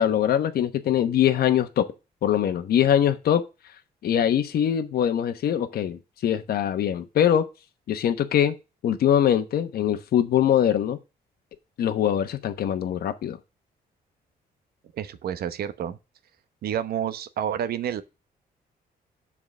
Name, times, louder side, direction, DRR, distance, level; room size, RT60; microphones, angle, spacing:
voice 1, 0.0-1.8 2.2-3.4 4.0-7.4 7.9-8.5 8.8-11.0 11.8-13.4, left 10 dB, 70° left, 1.0 m, -22 dB
voice 2, 14.9-16.0 16.6-18.0, right 9 dB, 70° right, 0.9 m, -29 dB
7.4 x 4.9 x 6.6 m
cardioid pair, 105°, 16 cm